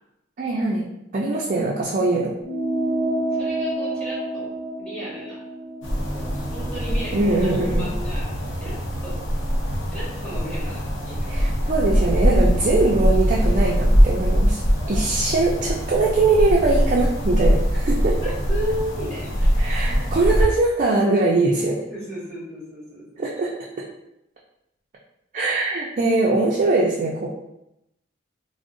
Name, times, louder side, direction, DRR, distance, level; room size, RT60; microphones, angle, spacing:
voice 1, 0.4-0.8 1.1-2.3 7.1-7.9 11.3-14.6 14.9-18.2 19.6-21.8 23.2-23.5 25.3-27.3, right 2 dB, 40° right, -3 dB, 0.4 m, -21 dB
sound 1, 2.4-7.2, right 1 dB, 25° left, 0.9 m, -29 dB
voice 2, 3.4-4.5 4.8-5.4 6.1-8.3 8.6-9.2 9.9-11.8 18.2-20.0 21.9-23.2, equal, 5° left, -9 dB, 1.5 m, -35 dB
sound 2, 5.8-20.4, equal, 80° left, 0.6 m, -22 dB
3.6 x 2.0 x 2.5 m, 0.84 s
head